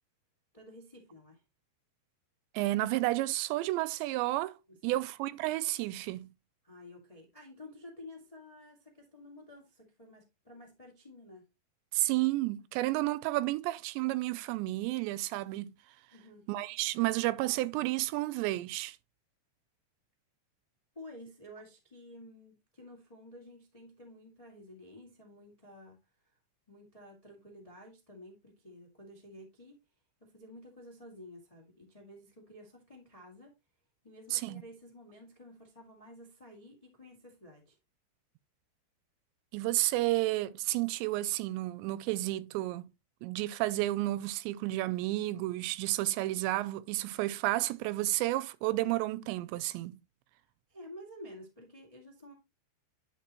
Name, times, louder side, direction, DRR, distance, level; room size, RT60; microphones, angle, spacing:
voice 1, 0.5-1.4 4.7-5.0 6.6-11.4 16.1-16.5 20.9-26.0 26.2-26.4 26.7-29.8 30.2-33.5 34.0-37.8 50.7-52.3, left 1 dB, 40° left, 0.5 m, -52 dB
voice 2, 2.5-4.6 4.8-6.3 11.9-15.7 16.5-19.0 34.3-34.6 39.5-42.9 43.2-50.0, right 17 dB, 85° right, 2.8 m, -31 dB
10.5 x 5.4 x 3.0 m
omnidirectional pair, 5.0 m